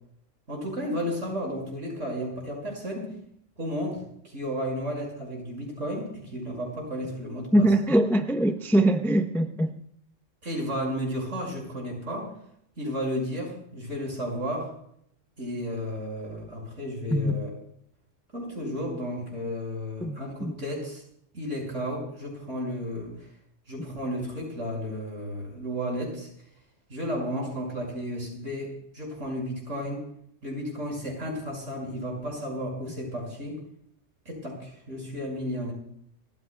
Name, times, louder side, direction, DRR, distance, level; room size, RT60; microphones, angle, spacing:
voice 1, 0.5-3.1 3.6-7.7 10.4-12.3 12.8-14.7 15.4-17.5 18.3-21.0 21.3-23.1 23.7-26.3 26.9-30.0 30.4-33.6 34.2-35.7, equal, 70° right, -1 dB, 6.5 m, -33 dB
voice 2, 7.5-9.8 17.1-17.3 20.0-20.6, right 1 dB, ahead, 6 dB, 0.6 m, -23 dB
29.5 x 14.5 x 2.3 m, 0.68 s
omnidirectional pair, 1.3 m